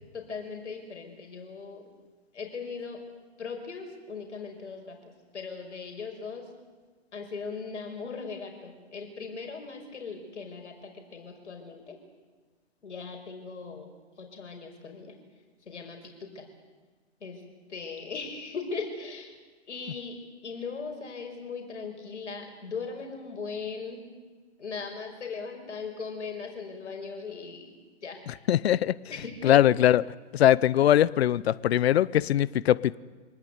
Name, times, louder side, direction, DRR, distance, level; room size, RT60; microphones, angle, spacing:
voice 1, 0.1-1.9 2.3-3.0 3.4-6.5 7.1-12.0 12.8-15.2 15.7-16.5 17.2-17.4 17.7-19.4 19.7-20.2 20.4-24.1 24.6-27.8 28.0-28.2 29.1-29.6, left 5 dB, 80° left, 4 dB, 5.6 m, -39 dB
voice 2, 28.3-29.0 29.4-30.0 30.3-33.0, left 11 dB, 60° left, 20 dB, 0.7 m, -21 dB
25.5 x 19.5 x 9.3 m, 1.3 s
hypercardioid pair, 135°, 35 cm